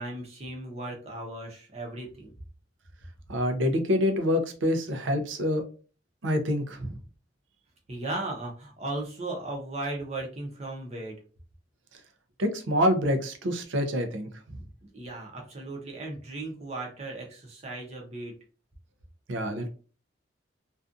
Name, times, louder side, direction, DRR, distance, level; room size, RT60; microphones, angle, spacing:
voice 1, 0.0-2.3 7.9-11.2 14.9-18.3, right 2 dB, 35° right, 0.7 m, -36 dB
voice 2, 3.3-5.6 6.2-7.0 12.4-14.6 19.3-19.7, left 1 dB, 80° right, 0.5 m, -26 dB
2.5 x 2.3 x 2.4 m
head